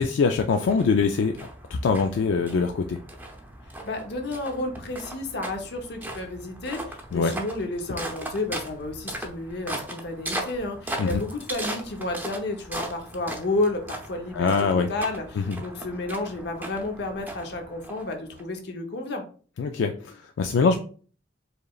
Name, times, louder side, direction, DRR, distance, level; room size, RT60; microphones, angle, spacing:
voice 1, 0.0-1.3 1.7-3.0 7.1-7.3 11.0-11.2 14.3-14.9 15.4-15.6 19.6-20.7, left 5 dB, 85° left, 6 dB, 0.3 m, -23 dB
sound 1, 0.7-18.4, right 1 dB, 10° right, 0.6 m, -38 dB
voice 2, 3.8-19.2, left 2 dB, 65° left, 4 dB, 0.8 m, -31 dB
4.9 x 3.1 x 2.3 m, 0.41 s
head